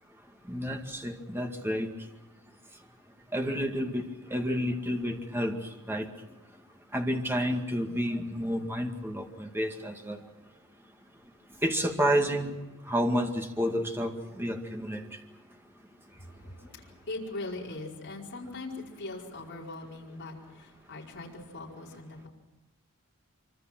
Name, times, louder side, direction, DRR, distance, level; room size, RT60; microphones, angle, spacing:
voice 1, 0.5-1.9 3.3-6.1 6.9-10.3 11.6-12.6 12.8-15.2, equal, 10° right, 3 dB, 2.1 m, -30 dB
voice 2, 16.1-22.3, left 2 dB, 55° left, -3 dB, 5.1 m, -41 dB
25.5 x 25.0 x 6.2 m, 1.0 s
head